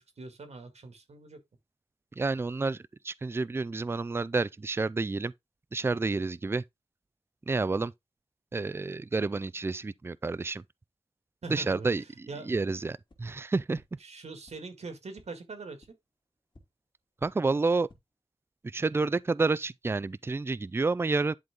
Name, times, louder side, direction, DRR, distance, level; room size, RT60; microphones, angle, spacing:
voice 1, 0.2-1.4 11.4-11.9 12.3-12.6 14.0-15.8, right 3 dB, 80° right, 2.1 m, -42 dB
voice 2, 2.2-5.3 5.7-6.6 7.5-7.9 8.5-10.6 11.5-13.8 17.2-17.9 18.6-21.4, right 3 dB, 20° right, 0.3 m, -29 dB
sound 1, 13.0-13.2 13.7-13.8 14.4-14.5 15.1-15.2 15.8-15.9 16.5-16.6 17.2-17.3 17.7-18.0, left 2 dB, 45° left, 2.5 m, -55 dB
10.5 x 4.0 x 3.6 m
wide cardioid pair, 105°, 11 cm